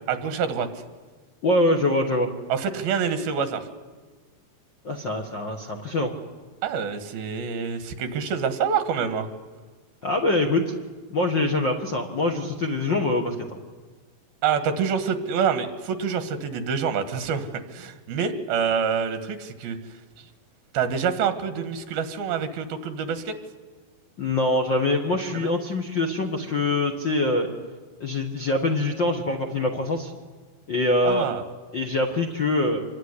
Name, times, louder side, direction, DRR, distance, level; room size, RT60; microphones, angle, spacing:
voice 1, 0.1-0.7 2.5-3.7 6.6-9.3 14.4-19.8 20.7-23.4 25.3-25.5 31.1-31.4, right 6 dB, 75° right, 10 dB, 3.5 m, -26 dB
voice 2, 1.4-2.3 4.8-6.1 10.0-10.7 11.1-13.6 24.2-27.5 28.0-30.1 30.7-31.3 31.7-32.8, left 2 dB, 50° left, 4 dB, 1.4 m, -24 dB
26.5 x 22.0 x 9.9 m, 1.4 s
omnidirectional pair, 4.4 m